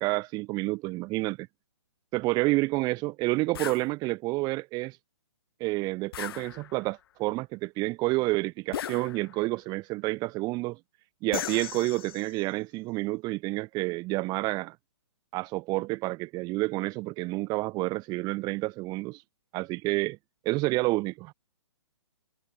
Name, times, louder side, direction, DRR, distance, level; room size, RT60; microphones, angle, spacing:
voice 1, 0.0-1.5 2.1-5.0 5.6-10.8 11.2-14.8 15.3-19.2 19.5-20.2 20.5-21.3, right 22 dB, 25° right, 5.3 m, -29 dB
sound 1, 3.5-3.9 6.1-6.9 8.7-9.5 11.3-12.4, left 11 dB, 50° left, 5.0 m, -37 dB
hypercardioid pair, 145°, 16 cm